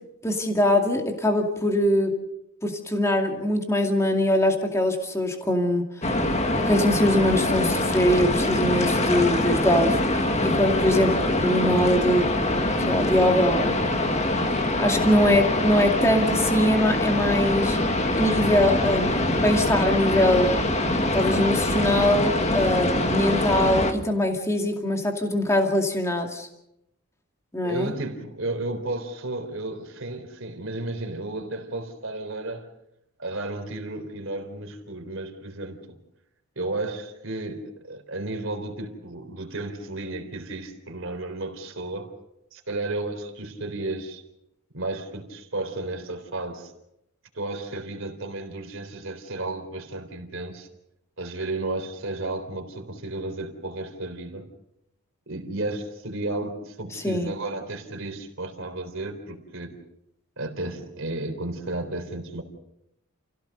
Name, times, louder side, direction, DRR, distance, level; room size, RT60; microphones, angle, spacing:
voice 1, 0.2-2.1 2.6-6.1 6.6-11.1 11.4-12.3 12.9-13.9 14.8-17.8 18.2-20.5 21.1-26.5 27.5-27.9 56.9-57.3, left 1 dB, 10° left, 3 dB, 2.3 m, -22 dB
sound 1, 6.0-23.9, left 1 dB, 30° left, 1.7 m, -24 dB
voice 2, 27.6-32.7 33.2-35.9 36.6-42.1 42.5-44.2 44.7-46.7 47.3-50.7 51.2-54.5 55.3-59.8 60.4-62.4, right 2 dB, 60° right, 5 dB, 3.8 m, -33 dB
29.5 x 16.5 x 6.7 m, 0.83 s
head